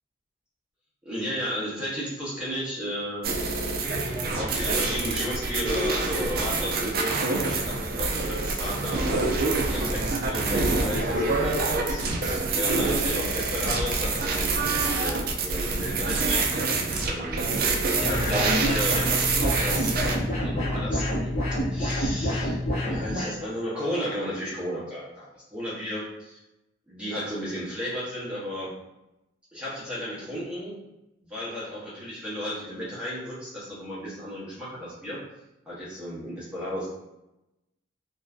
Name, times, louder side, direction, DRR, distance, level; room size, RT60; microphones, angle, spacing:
voice 1, 1.0-3.7 3.9-21.4 21.7-22.6 22.8-26.4 26.9-28.7 29.5-30.8 31.2-35.2 35.7-36.9, equal, 5° right, -9 dB, 0.7 m, -34 dB
sound 1, 3.2-20.2, right 3 dB, 45° right, 0.3 m, -26 dB
sound 2, 18.0-23.3, equal, 35° left, 0.6 m, -28 dB
2.5 x 2.2 x 2.3 m, 0.92 s
head